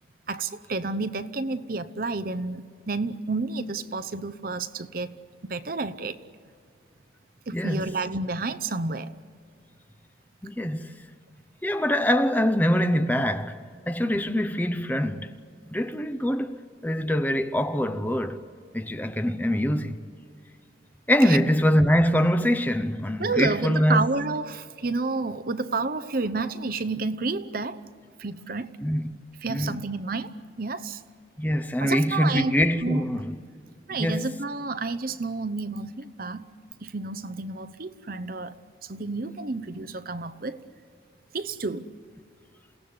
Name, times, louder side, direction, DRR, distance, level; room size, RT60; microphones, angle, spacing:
voice 1, 0.3-5.2 5.4-6.2 7.5-9.1 21.3-21.4 23.2-27.8 28.2-28.7 29.4-31.0 31.8-32.5 32.8-33.0 33.9-36.5 36.8-40.6 41.3-41.9, right 3 dB, 50° right, 0.8 m, -30 dB
voice 2, 7.5-7.9 10.4-10.9 11.6-13.6 13.9-15.3 15.7-16.6 16.8-18.4 18.7-20.0 21.1-24.1 28.8-29.1 29.5-29.8 31.4-33.4 34.0-34.3, equal, 10° left, 0.8 m, -24 dB
28.5 x 17.5 x 9.6 m
head